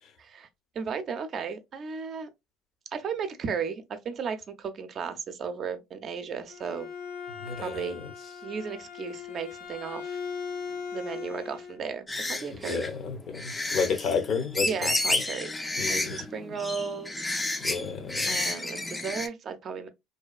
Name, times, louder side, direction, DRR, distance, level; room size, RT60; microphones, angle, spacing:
voice 1, 0.7-2.3 2.9-6.9 7.6-8.0 8.4-10.2 10.9-12.9 14.6-15.5 15.9-17.2 18.3-19.9, right 6 dB, 45° right, 0.5 m, -35 dB
Bowed string instrument, 6.3-11.8, left 6 dB, 90° left, 0.8 m, -39 dB
voice 2, 7.4-8.0 12.6-15.2 15.8-16.2 17.6-18.4, left 5 dB, 55° left, 0.6 m, -31 dB
sound 1, 12.1-19.3, left 2 dB, 15° left, 0.4 m, -31 dB
2.7 x 2.3 x 2.3 m
supercardioid pair, 90°, 0 cm